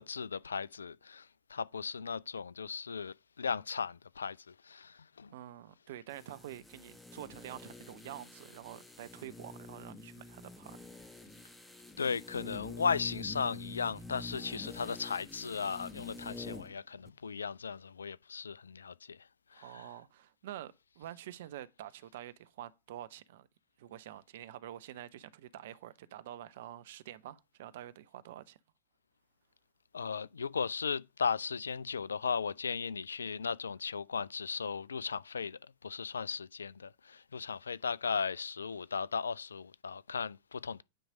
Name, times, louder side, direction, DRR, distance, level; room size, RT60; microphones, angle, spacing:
voice 1, 0.0-5.3 12.0-19.2 19.5-19.9 29.9-40.8, left 5 dB, 70° left, 0.3 m, -36 dB
voice 2, 5.3-10.8 19.5-23.5 23.8-28.6, right 12 dB, 55° right, 0.6 m, -47 dB
sound 1, 6.1-16.8 17.0-17.1, left 2 dB, 5° left, 1.0 m, -48 dB
9.1 x 3.2 x 5.0 m
figure-of-eight pair, 90°, 0 cm